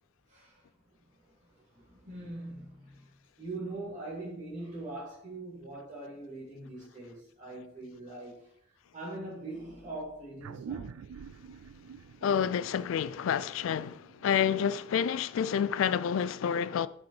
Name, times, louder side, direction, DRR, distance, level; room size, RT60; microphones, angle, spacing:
voice 1, 1.7-3.1 3.4-8.4 8.9-10.9, right 2 dB, 40° right, 2.4 m, -42 dB
sound 1, 10.4-15.3, right 7 dB, 90° right, 0.3 m, -46 dB
voice 2, 12.2-16.9, left 8 dB, 70° left, 0.3 m, -29 dB
5.7 x 4.4 x 4.1 m
head